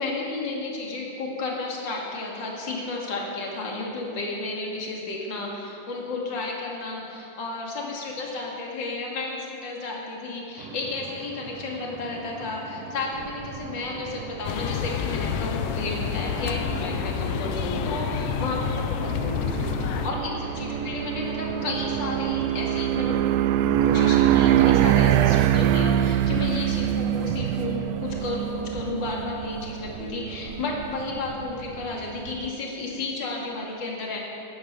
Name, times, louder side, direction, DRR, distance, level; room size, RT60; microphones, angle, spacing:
voice 1, 0.0-23.2 23.8-34.2, left 3 dB, 40° left, -2 dB, 2.6 m, -32 dB
sound 1, 10.6-22.5, right 7 dB, 70° right, 1.5 m, -42 dB
sound 2, 13.2-32.5, right 11 dB, 85° right, 1.5 m, -25 dB
sound 3, 14.4-20.1, left 9 dB, 75° left, 1.7 m, -29 dB
19.5 x 8.6 x 6.9 m, 2.8 s
omnidirectional pair, 3.6 m